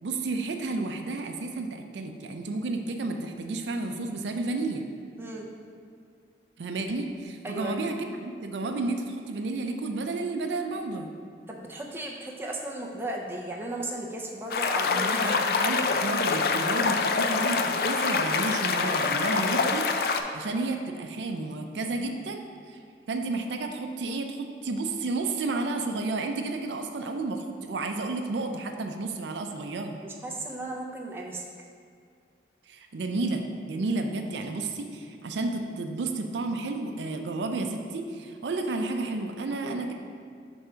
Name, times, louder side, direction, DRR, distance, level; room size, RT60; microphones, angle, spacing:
voice 1, 0.0-4.8 6.6-11.1 14.8-22.8 23.1-30.1 32.7-39.9, right 3 dB, 85° right, 5 dB, 0.5 m, -31 dB
voice 2, 7.4-7.9 11.5-15.5 30.0-31.4 39.6-39.8, right 1 dB, 10° right, -1 dB, 0.4 m, -36 dB
sound 1, 14.5-20.2, left 4 dB, 55° left, 0.3 m, -25 dB
5.0 x 3.5 x 5.5 m, 2.2 s
head